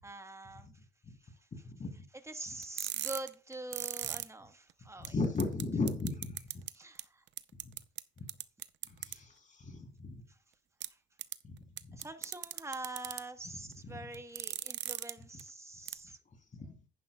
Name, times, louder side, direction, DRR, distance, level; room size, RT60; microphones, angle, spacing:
voice 1, 0.0-0.8 1.2-1.3 2.3-5.1 6.7-7.2 9.1-9.2 10.9-11.0 11.9-16.2, right 2 dB, 15° right, 1.2 m, -45 dB
voice 2, 1.5-2.0 5.0-6.4 7.6-7.7 8.9-10.1 11.4-11.5 11.8-12.0 13.8-14.0 16.5-16.7, left 3 dB, 40° left, 3.2 m, -36 dB
sound 1, 2.6-4.2 4.7-4.8 5.0-5.1 5.4-5.6 5.9-6.7 7.0-7.1 7.4-8.0 8.3-9.1 10.8-10.9 11.2-11.3 11.8-13.2 14.1-15.1 15.4-15.5 15.9-16.0, right 12 dB, 65° right, 0.6 m, -37 dB
10.5 x 10.0 x 2.3 m
cardioid pair, 90°, 20 cm